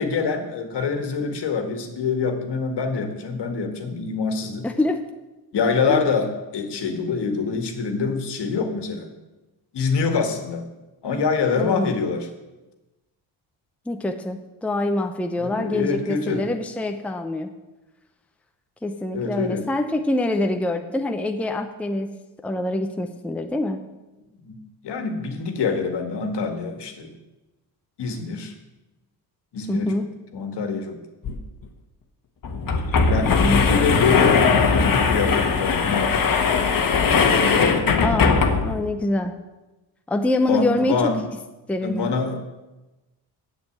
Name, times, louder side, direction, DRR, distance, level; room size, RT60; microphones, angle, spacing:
voice 1, 0.0-4.7 5.5-9.1 9.7-10.7 11.0-12.3 15.4-16.5 19.1-19.7 24.5-27.1 28.0-28.5 29.5-30.0 30.3-31.0 31.3-31.4 33.1-36.4 37.3-37.9 40.5-41.2 41.8-42.4, left 5 dB, 65° left, 5 dB, 1.9 m, -25 dB
voice 2, 4.6-5.1 5.9-6.0 11.6-11.9 13.9-17.5 18.8-22.2 22.4-23.8 29.7-30.1 33.2-33.6 38.0-39.3 40.1-41.1 41.7-42.1, left 2 dB, 5° left, 6 dB, 0.7 m, -25 dB
sound 1, 31.2-31.3 31.6-31.7 32.4-38.9, left 5 dB, 45° left, 1.4 m, -19 dB
7.8 x 7.7 x 8.6 m, 1.1 s
cardioid pair, 90°, 45 cm